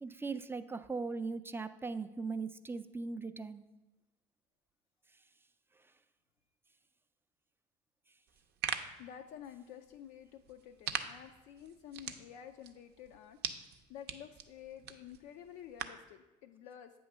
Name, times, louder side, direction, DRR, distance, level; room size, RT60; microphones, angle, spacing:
voice 1, 0.0-3.6, right 4 dB, 10° right, 11 dB, 0.4 m, -39 dB
sound 1, 8.3-16.1, right 8 dB, 60° right, 0.6 m, -44 dB
voice 2, 9.0-13.4 13.9-16.9, left 9 dB, 70° left, 5 dB, 0.4 m, -51 dB
8.0 x 3.1 x 5.9 m, 1.0 s
supercardioid pair, 75°, 19 cm